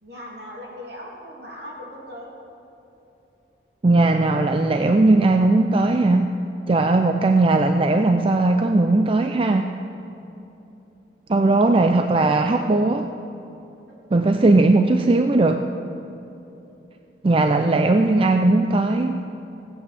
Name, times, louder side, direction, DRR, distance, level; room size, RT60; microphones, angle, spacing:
voice 1, 0.0-2.3, left 1 dB, 65° right, -3 dB, 2.9 m, -38 dB
voice 2, 3.8-6.3 6.7-9.7 11.3-13.1 14.1-15.6 17.2-19.2, right 2 dB, 30° right, 6 dB, 0.4 m, -18 dB
16.0 x 8.7 x 6.8 m, 3.0 s
head